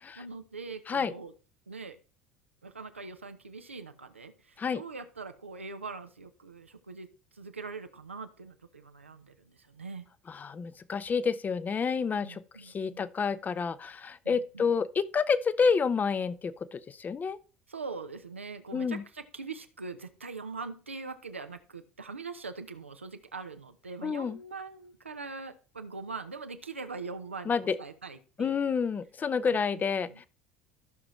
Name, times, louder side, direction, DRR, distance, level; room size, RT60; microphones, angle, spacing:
voice 1, 0.2-1.3 1.7-2.0 2.6-7.1 7.3-10.1 12.2-13.1 14.2-14.9 17.7-28.7 29.4-30.3, right 4 dB, 85° right, 0.9 m, -42 dB
voice 2, 10.3-17.4 18.7-19.0 24.0-24.4 27.5-27.8 28.4-30.1, left 5 dB, 25° left, 0.7 m, -29 dB
14.5 x 6.2 x 3.2 m
figure-of-eight pair, 65°, 6 cm